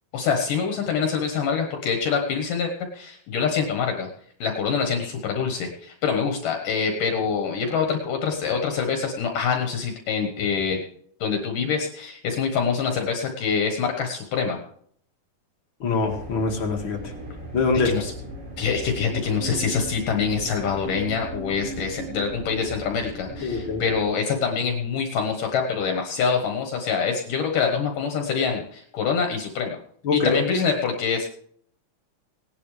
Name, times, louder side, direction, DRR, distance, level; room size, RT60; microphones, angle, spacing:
voice 1, 0.1-4.1 4.4-10.8 11.2-14.6 17.8-18.1 18.6-29.8 30.1-31.3, left 6 dB, 65° left, 3 dB, 2.8 m, -25 dB
voice 2, 15.8-17.1 17.5-17.9 23.4-23.8 30.0-30.4, left 4 dB, 40° left, 2 dB, 2.3 m, -24 dB
sound 1, 16.0-24.0, right 2 dB, 65° right, 6.4 m, -37 dB
18.5 x 11.0 x 3.4 m, 0.62 s
omnidirectional pair, 4.2 m